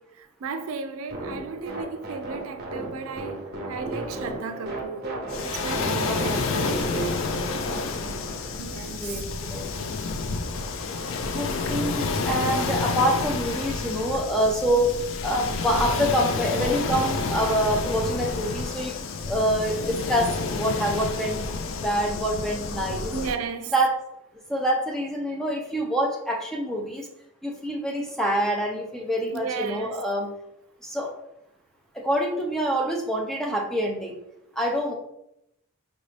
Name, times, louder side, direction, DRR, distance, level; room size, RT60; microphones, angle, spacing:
voice 1, 0.1-5.2 5.4-6.7 7.1-7.3 8.6-9.2 23.1-23.7 29.3-30.0, right 5 dB, 80° right, 0.4 m, -35 dB
sound 1, 1.1-8.5, right 2 dB, 50° right, 0.8 m, -34 dB
Waves surf, 5.3-23.3, left 4 dB, 70° left, 0.4 m, -29 dB
voice 2, 6.0-6.5 7.7-8.2 9.0-9.8 11.3-15.0 15.2-19.0 19.3-23.1 23.7-24.0 24.5-27.1 27.4-30.3 30.8-31.1 31.9-34.2 34.6-34.9, equal, ahead, 0.5 m, -26 dB
5.1 x 2.6 x 3.2 m
head